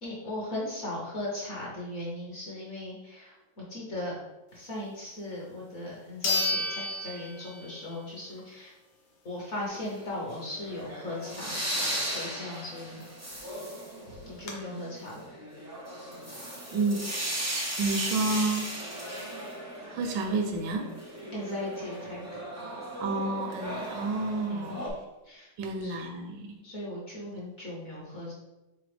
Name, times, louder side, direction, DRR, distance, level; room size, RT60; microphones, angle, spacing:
voice 1, 0.0-4.2 4.5-8.7 9.2-13.0 14.2-15.2 21.3-22.4 24.4-24.8 25.2-25.5 25.8-26.0 26.6-28.3, left 1 dB, 45° left, -4 dB, 1.1 m, -38 dB
sound 1, 5.4-5.5 6.2-8.0 8.4-8.5 13.1-13.2 13.4-13.5 14.1-14.5, left 2 dB, 85° left, 1.5 m, -31 dB
sound 2, 9.7-24.9, equal, 25° right, 0.3 m, -37 dB
voice 2, 16.7-18.7 19.9-20.9 23.0-25.0 25.6-26.5, right 3 dB, 75° right, 4 dB, 1.2 m, -30 dB
4.1 x 3.9 x 3.3 m, 0.99 s
omnidirectional pair, 2.1 m